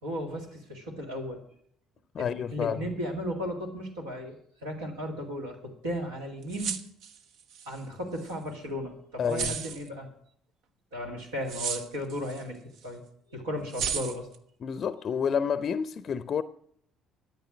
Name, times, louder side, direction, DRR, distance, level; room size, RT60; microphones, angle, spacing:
voice 1, 0.0-1.4 2.2-6.8 7.7-10.1 10.9-13.0 13.3-14.3, equal, 80° right, 2.3 m, -35 dB
voice 2, 2.1-2.8 9.2-9.6 14.6-16.4, left 7 dB, 45° left, 0.6 m, -29 dB
sound 1, 6.4-7.8 8.2-8.3 9.3-9.9 11.5-12.4 12.8-12.9 13.7-14.4, right 7 dB, 60° right, 0.8 m, -34 dB
13.0 x 9.6 x 6.1 m
figure-of-eight pair, 55°, 0 cm